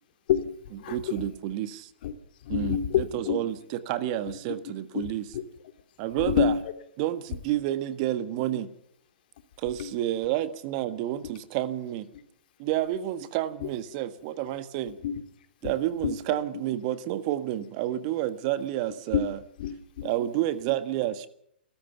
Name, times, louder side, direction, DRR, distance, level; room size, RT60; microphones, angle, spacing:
voice 1, 0.3-1.2 2.0-2.1 2.4-3.4 4.9-5.1 5.3-5.4 6.2-6.6 9.8-9.9 13.6-13.7 15.0-15.2 15.6-15.7 16.0-16.2 19.6-20.1, left 9 dB, 55° left, 9 dB, 2.7 m, -28 dB
voice 2, 0.9-1.9 2.5-5.2 6.0-6.5 7.0-8.7 9.6-12.1 12.6-15.0 15.6-19.4 20.0-21.3, right 13 dB, 40° right, 12 dB, 1.5 m, -30 dB
28.5 x 13.5 x 7.0 m, 0.69 s
hypercardioid pair, 125°, 6 cm